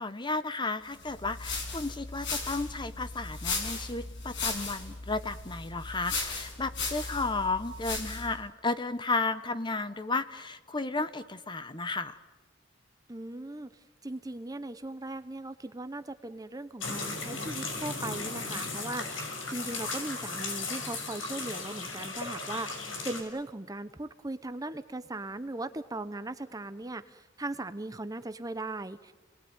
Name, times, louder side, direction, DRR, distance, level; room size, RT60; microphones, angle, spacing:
voice 1, 0.0-12.2, left 3 dB, 25° left, 12 dB, 1.0 m, -33 dB
sound 1, 1.0-8.4, left 3 dB, 70° left, 6.2 m, -36 dB
voice 2, 13.1-13.7 14.0-29.1, right 2 dB, 20° right, 11 dB, 0.8 m, -38 dB
sound 2, 16.8-23.2, left 3 dB, 85° left, 5.9 m, -36 dB
29.5 x 20.0 x 9.5 m, 1.2 s
head